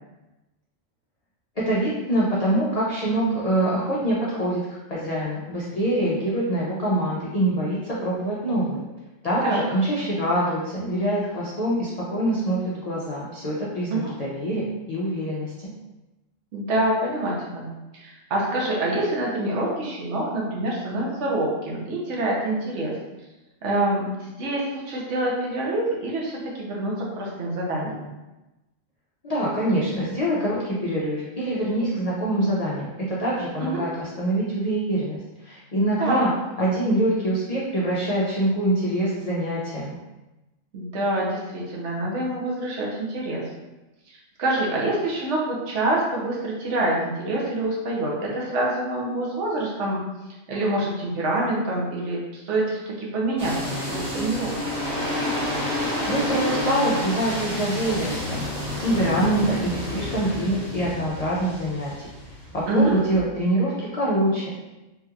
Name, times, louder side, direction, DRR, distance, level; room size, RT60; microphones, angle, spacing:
voice 1, 1.6-4.6 4.9-8.8 9.2-15.7 29.2-36.3 36.6-39.9 56.1-58.4 58.8-61.9 62.5-64.5, right 1 dB, 70° left, -6 dB, 0.3 m, -25 dB
voice 2, 16.5-22.9 23.6-28.1 33.6-33.8 36.0-36.2 40.7-43.4 44.1-50.0 50.5-54.6 62.7-63.0, right 1 dB, 65° right, -3 dB, 1.0 m, -26 dB
sound 1, 53.4-63.2, left 1 dB, 35° right, 0.8 m, -30 dB
3.1 x 2.8 x 2.4 m, 1.0 s
omnidirectional pair, 1.4 m